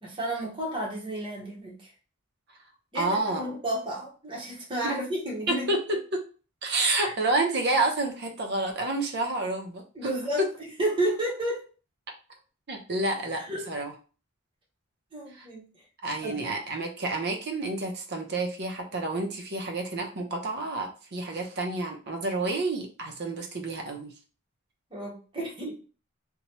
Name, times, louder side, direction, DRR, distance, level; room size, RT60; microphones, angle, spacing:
voice 1, 0.0-1.9 2.9-5.7 7.0-7.1 9.9-11.6 13.5-13.7 15.1-15.6 16.2-16.4 24.9-25.7, right 1 dB, 25° right, -4 dB, 1.0 m, -32 dB
voice 2, 2.9-3.5 4.8-4.9 5.5-6.2 6.6-9.8 10.4-10.5 12.7-13.9 15.3-15.5 16.0-24.1, right 2 dB, 50° right, 3 dB, 0.6 m, -29 dB
2.9 x 2.2 x 2.9 m, 0.37 s
head